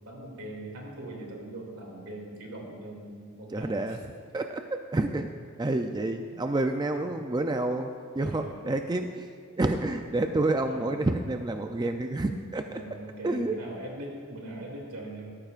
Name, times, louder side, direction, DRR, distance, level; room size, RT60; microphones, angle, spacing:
voice 1, 0.0-4.0 6.3-6.4 6.9-7.2 8.2-8.6 10.6-10.9 12.7-15.3, right 1 dB, 85° right, -1 dB, 2.5 m, -41 dB
voice 2, 3.5-4.0 4.3-5.3 5.6-7.9 8.2-9.3 9.6-12.8 13.2-13.5, right 2 dB, 20° right, 5 dB, 0.4 m, -29 dB
17.5 x 13.5 x 2.5 m, 2.1 s
head